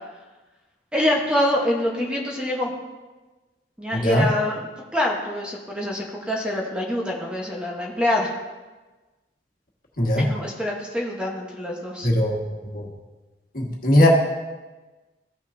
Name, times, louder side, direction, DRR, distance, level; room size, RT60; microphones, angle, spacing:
voice 1, 0.9-2.7 3.8-8.3 10.2-12.1, left 1 dB, 5° right, -2 dB, 1.1 m, -25 dB
voice 2, 3.9-4.3 10.0-10.3 12.0-12.4 12.7-12.9 13.5-14.1, left 1 dB, 55° left, -1 dB, 1.6 m, -19 dB
15.5 x 6.0 x 2.7 m, 1.2 s
head